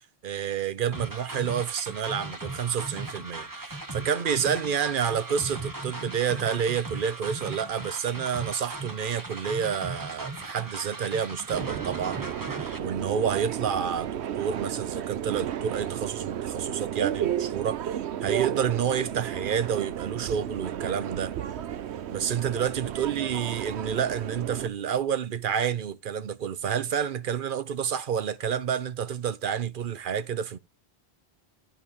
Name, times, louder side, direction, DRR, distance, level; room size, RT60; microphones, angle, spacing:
voice 1, 0.2-12.3 12.8-17.8 18.2-21.3 22.1-30.6, right 8 dB, 55° right, 0.8 m, -29 dB
sound 1, 0.9-12.8, right 2 dB, 20° right, 1.1 m, -38 dB
Subway metro underground, 11.5-24.7, right 10 dB, 85° right, 1.0 m, -33 dB
12.5 x 4.3 x 3.7 m
omnidirectional pair, 1.1 m